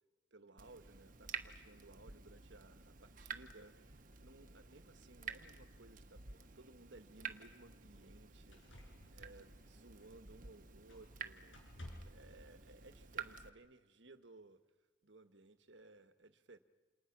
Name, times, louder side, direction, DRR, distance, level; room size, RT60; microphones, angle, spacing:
voice 1, 0.3-14.6 15.0-16.6, right 2 dB, 70° right, 1.5 m, -60 dB
Water tap faucet / Drip, 0.6-13.5, right 6 dB, 45° right, 1.4 m, -51 dB
sound 1, 8.0-8.1 8.5-10.5 10.9-11.2 11.5-12.3 13.4-13.5, left 1 dB, 85° left, 6.2 m, -55 dB
29.0 x 28.5 x 6.1 m
head